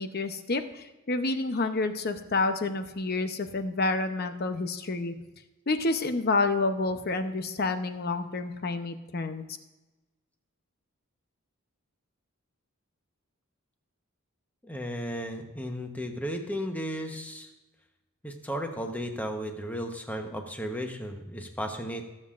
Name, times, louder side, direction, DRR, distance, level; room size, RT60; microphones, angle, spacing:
voice 1, 0.0-5.1 5.7-9.4, left 3 dB, 45° left, 8 dB, 0.8 m, -29 dB
voice 2, 14.6-17.5 18.2-22.1, equal, 5° left, 4 dB, 1.0 m, -34 dB
21.5 x 7.5 x 2.5 m, 1.1 s
head